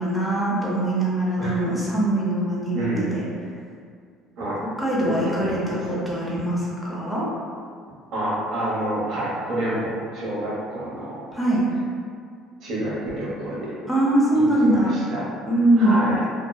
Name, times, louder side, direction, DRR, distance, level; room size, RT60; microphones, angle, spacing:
voice 1, 0.0-3.2 4.8-7.3 11.3-11.7 13.9-14.9 15.5-16.0, right 1 dB, 5° left, -7 dB, 0.7 m, -22 dB
voice 2, 2.7-3.2 4.4-4.6 5.0-6.0 8.1-11.2 12.6-13.7 14.3-15.3 15.8-16.2, right 1 dB, 65° right, -8 dB, 0.9 m, -28 dB
2.7 x 2.1 x 2.3 m, 2.1 s
supercardioid pair, 80°, 0 cm